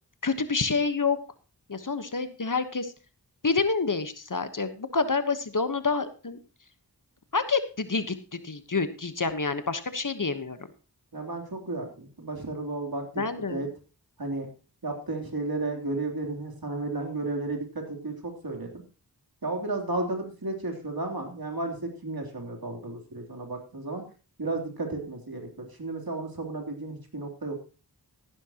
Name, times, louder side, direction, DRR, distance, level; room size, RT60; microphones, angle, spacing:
voice 1, 0.2-1.2 1.7-2.9 3.4-6.4 7.3-8.1 8.4-10.6 13.2-13.6, left 4 dB, 50° left, 11 dB, 1.2 m, -28 dB
voice 2, 11.1-13.1 13.3-13.7 14.2-14.5 14.8-18.8 19.4-24.0 24.4-27.6, right 2 dB, 60° right, 2 dB, 3.3 m, -33 dB
14.0 x 11.5 x 3.0 m, 0.33 s
wide cardioid pair, 40°, 41 cm